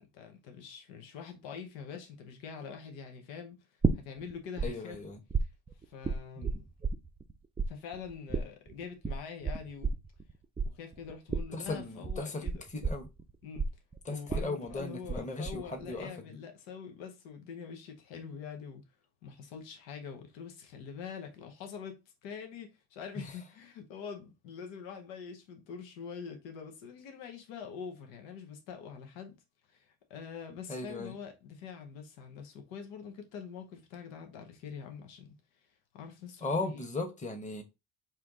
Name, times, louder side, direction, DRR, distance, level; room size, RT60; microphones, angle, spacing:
voice 1, 0.0-3.8 4.0-5.0 5.4-5.5 5.8-6.6 7.7-9.9 10.6-12.6 13.4-13.7 14.1-18.8 19.2-29.3 29.7-35.3 35.6-35.7 35.9-36.9, left 6 dB, 85° left, 0.9 m, -45 dB
sound 1, 3.8-4.7 4.9-7.3 7.6-15.2 15.5-16.0, right 4 dB, 15° right, 0.4 m, -32 dB
voice 2, 4.6-5.2 6.4-6.5 11.6-12.4 12.7-13.1 14.0-16.1 23.2-23.3 30.7-31.1 36.4-37.6, left 2 dB, 15° left, 1.0 m, -37 dB
4.4 x 2.5 x 3.7 m
supercardioid pair, 70°, 45 cm